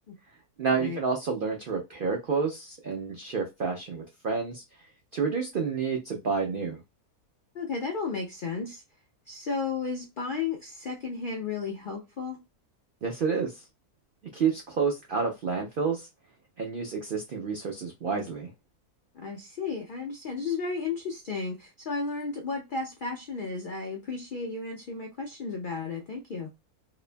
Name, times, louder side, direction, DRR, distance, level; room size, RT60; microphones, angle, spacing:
voice 1, 0.6-4.6 5.1-6.8 13.0-13.5 14.3-16.1 16.6-18.5, right 5 dB, 75° right, 0.4 m, -29 dB
voice 2, 7.5-8.8 9.3-12.4 19.1-26.5, left 4 dB, 75° left, 0.4 m, -33 dB
2.9 x 2.2 x 2.4 m
omnidirectional pair, 1.6 m